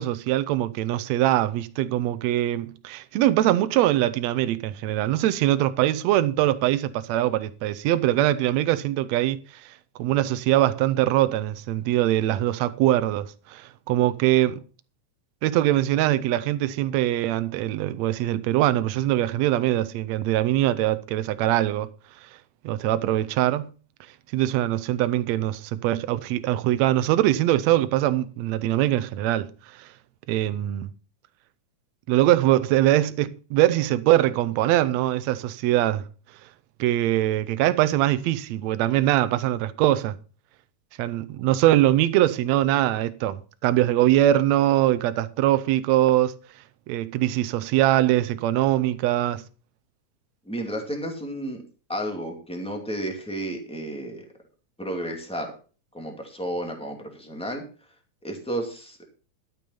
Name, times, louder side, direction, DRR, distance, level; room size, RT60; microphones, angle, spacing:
voice 1, 0.0-9.4 10.0-14.6 15.4-21.9 22.6-23.7 24.3-29.5 29.8-29.9 30.3-30.9 32.1-36.0 36.8-40.2 41.0-46.3 46.9-49.4, right 14 dB, 75° right, 1.9 m, -22 dB
voice 2, 50.4-51.6 51.9-54.3 54.8-55.5 55.9-57.6 58.2-59.0, right 1 dB, ahead, 1.9 m, -32 dB
12.5 x 7.0 x 5.6 m
omnidirectional pair, 3.4 m